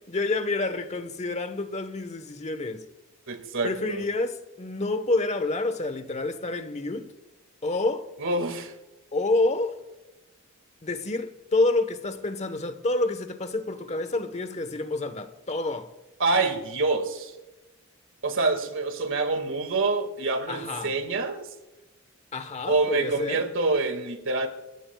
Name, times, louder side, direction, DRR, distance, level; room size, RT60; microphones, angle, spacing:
voice 1, 0.1-2.8 3.6-7.1 7.6-8.1 9.1-9.8 10.8-15.9 20.5-20.9 22.3-23.4, left 2 dB, 30° left, 1.1 m, -28 dB
voice 2, 3.3-4.0 8.2-8.7 16.2-17.3 18.2-21.5 22.7-24.5, right 3 dB, 65° right, 2.0 m, -26 dB
28.5 x 16.0 x 2.3 m
head